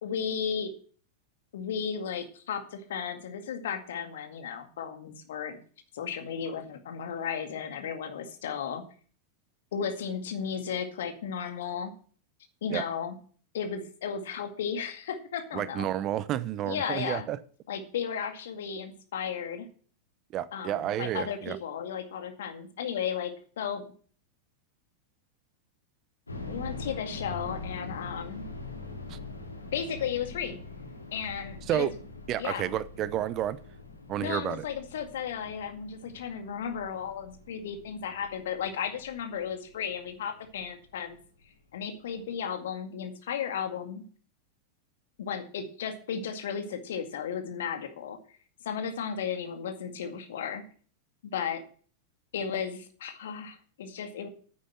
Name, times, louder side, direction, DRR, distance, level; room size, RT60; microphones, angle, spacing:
voice 1, 0.0-0.7 1.5-5.6 5.9-8.8 9.7-11.9 12.6-13.1 13.5-15.9 16.6-17.3 17.7-19.7 20.5-23.8 26.5-28.5 29.7-30.6 31.1-31.9 32.4-32.7 34.2-41.2 41.7-44.0 45.2-48.2 48.6-50.6 51.3-51.6 52.3-54.3, left 7 dB, 60° left, 2.0 m, -34 dB
voice 2, 15.5-17.4 20.3-21.6 29.1-29.2 31.7-31.9 32.3-33.6 34.1-34.6, right 12 dB, 35° right, 0.7 m, -30 dB
sound 1, 26.3-41.1 41.4-41.5 42.1-42.4, left 3 dB, 80° left, 2.3 m, -43 dB
9.7 x 8.7 x 6.0 m
figure-of-eight pair, 90°, 0 cm